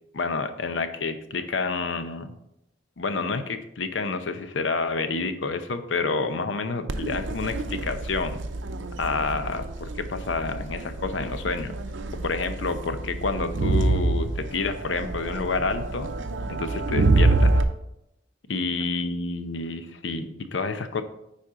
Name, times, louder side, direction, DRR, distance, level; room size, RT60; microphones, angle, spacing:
voice 1, 0.1-2.4 3.0-8.4 9.0-11.7 12.2-16.1 16.5-17.6 18.5-21.0, left 4 dB, 85° left, 9 dB, 0.7 m, -29 dB
Crowd, 6.9-17.6, right 2 dB, 85° right, 0.6 m, -26 dB
9.7 x 4.3 x 3.7 m, 0.83 s
head